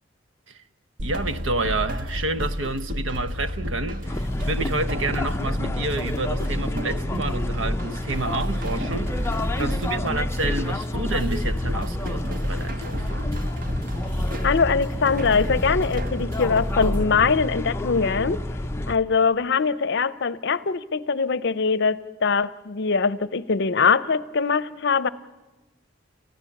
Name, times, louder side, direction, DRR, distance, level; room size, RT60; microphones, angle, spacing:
sound 1, 1.0-17.0, equal, 45° right, 1.4 m, -31 dB
voice 1, 1.0-13.4, right 2 dB, 75° right, 0.9 m, -29 dB
sound 2, 4.0-19.0, left 1 dB, 15° left, 0.6 m, -29 dB
voice 2, 14.4-18.4 18.9-25.1, left 5 dB, 60° left, 0.7 m, -22 dB
28.5 x 15.0 x 7.1 m
head